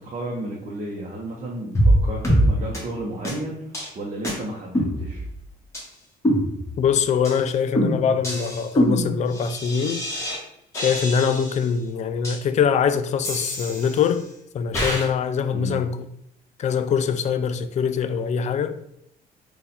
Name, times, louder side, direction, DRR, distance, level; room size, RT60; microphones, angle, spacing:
voice 1, 0.0-5.3 15.5-15.8, right 1 dB, 40° right, 0.8 m, -33 dB
sound 1, 1.7-2.0 2.2-2.4 2.7-2.8 3.2-3.3 3.7-3.9 4.2-4.3 4.7-5.4 5.7-5.8 6.2-6.9 7.2-7.4 7.7-10.4 10.7-11.7 12.2-12.4 13.2-14.2 14.7-15.1, equal, 15° left, 1.5 m, -24 dB
voice 2, 6.8-10.0 10.7-14.3 14.5-16.1 16.6-18.7, left 7 dB, 45° left, 0.4 m, -23 dB
4.1 x 2.4 x 4.0 m
cardioid pair, 110°, 17 cm